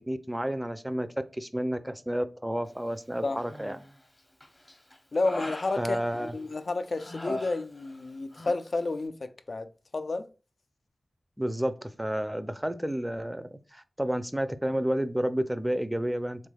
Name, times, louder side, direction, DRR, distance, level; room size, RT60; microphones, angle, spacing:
voice 1, 0.1-1.1 1.3-3.8 5.8-6.3 11.4-16.5, equal, 10° right, 0.4 m, -31 dB
Human voice, 3.4-4.0 4.4-6.5 7.0-8.1 8.3-8.6, left 1 dB, 25° left, 0.8 m, -40 dB
voice 2, 5.1-10.3, left 3 dB, 65° left, 0.3 m, -31 dB
3.5 x 3.3 x 2.3 m
cardioid pair, 50°, 0 cm